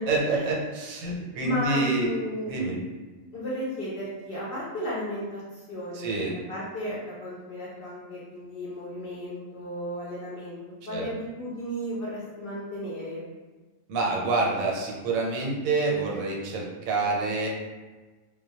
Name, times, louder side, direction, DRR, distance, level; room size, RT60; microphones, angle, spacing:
voice 1, 0.1-2.1 2.5-2.8 5.9-6.4 10.9-11.1 13.9-17.5, right 3 dB, 85° right, -2 dB, 1.0 m, -27 dB
voice 2, 1.4-2.5 3.3-13.2, equal, 65° left, -7 dB, 0.6 m, -34 dB
2.1 x 2.1 x 2.7 m, 1.3 s
omnidirectional pair, 1.4 m